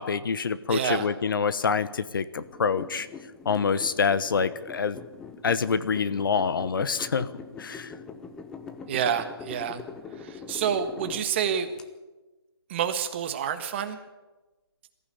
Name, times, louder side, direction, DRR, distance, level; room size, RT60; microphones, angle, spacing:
voice 1, 0.0-3.1 3.4-5.0 5.4-7.3 7.6-7.9, left 5 dB, 50° left, 14 dB, 1.1 m, -26 dB
voice 2, 0.7-1.1 8.9-9.8 10.2-11.7 12.7-14.0, right 8 dB, 25° right, 8 dB, 1.5 m, -28 dB
sound 1, 2.4-11.8, left 5 dB, 5° left, 0.6 m, -43 dB
22.5 x 15.0 x 8.6 m, 1.1 s
hypercardioid pair, 160°, 14 cm